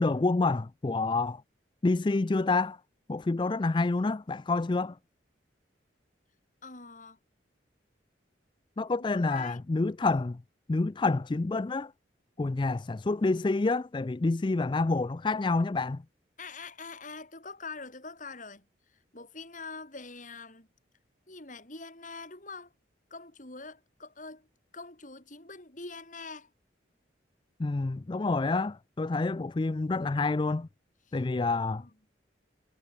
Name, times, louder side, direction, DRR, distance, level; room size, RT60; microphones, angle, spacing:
voice 1, 0.0-1.4 1.8-2.8 3.1-5.0 8.8-10.4 10.7-11.9 12.4-16.0 27.6-30.7 31.1-31.8, left 3 dB, 25° left, 0.4 m, -28 dB
voice 2, 6.6-7.2 8.9-9.6 16.4-20.7 21.3-22.7 23.1-24.5 24.7-26.5 31.1-31.2 31.5-31.9, left 4 dB, 40° left, 4.7 m, -44 dB
head